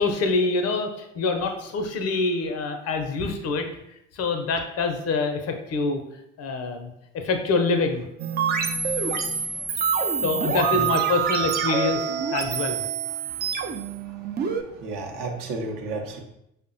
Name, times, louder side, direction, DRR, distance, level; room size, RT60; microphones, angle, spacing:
voice 1, 0.0-3.7 4.1-6.0 6.4-6.9 7.1-8.0 10.2-12.0 12.3-12.8, left 3 dB, 40° left, 5 dB, 0.6 m, -25 dB
sound 1, 8.2-14.6, right 7 dB, 25° right, 0.4 m, -26 dB
voice 2, 9.1-9.5 10.7-11.1 13.3-13.4 14.8-16.2, right 3 dB, 55° right, 2 dB, 0.8 m, -32 dB
5.1 x 2.1 x 2.5 m, 0.80 s
figure-of-eight pair, 55°, 38 cm